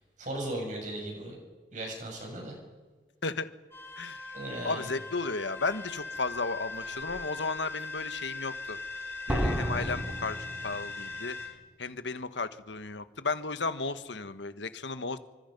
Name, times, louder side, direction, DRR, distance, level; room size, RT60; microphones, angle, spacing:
voice 1, 0.2-1.4 1.7-2.6 4.3-4.9, right 1 dB, 40° right, 0 dB, 7.6 m, -37 dB
sound 1, 3.7-11.5, left 3 dB, 15° left, 4.2 m, -40 dB
voice 2, 4.0-4.3 4.6-8.8 9.3-10.4 10.6-11.5 11.8-15.2, left 3 dB, 80° left, 11 dB, 1.4 m, -34 dB
Slam, 6.1-6.2 6.8-7.2 9.3-11.2 11.4-11.5, equal, 10° right, 2.3 m, -32 dB
27.0 x 25.0 x 5.4 m, 1.4 s
head